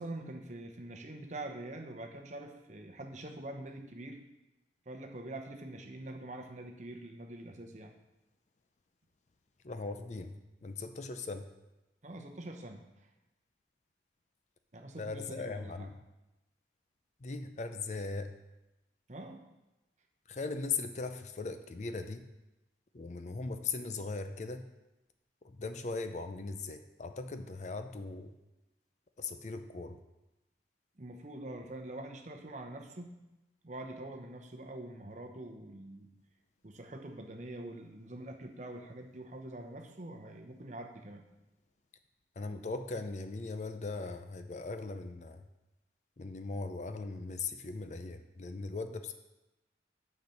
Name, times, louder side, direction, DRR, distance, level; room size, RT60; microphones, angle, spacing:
voice 1, 0.0-4.2 4.9-7.9 12.0-13.1 14.7-15.9 19.1-19.4 31.0-33.1 33.6-36.1 36.6-41.2, right 1 dB, 40° right, 4 dB, 0.9 m, -45 dB
voice 2, 9.6-11.5 15.0-15.9 17.2-18.3 20.3-22.3 22.9-24.7 25.4-28.3 29.2-30.0 42.4-45.4 46.2-49.1, left 3 dB, 40° left, 8 dB, 0.5 m, -39 dB
6.8 x 6.6 x 5.8 m, 0.99 s
head